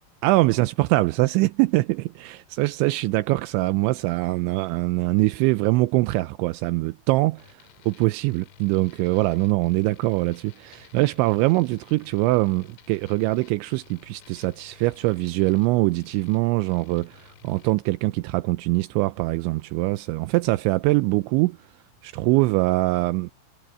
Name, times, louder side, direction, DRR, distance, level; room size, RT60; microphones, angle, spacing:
voice 1, 0.2-21.6 22.0-23.3, right 20 dB, 85° right, 2.6 m, -23 dB
Guitar Hum with Plasma Pedal, 7.4-17.7, left 10 dB, 85° left, 4.7 m, -54 dB
omnidirectional pair, 5.9 m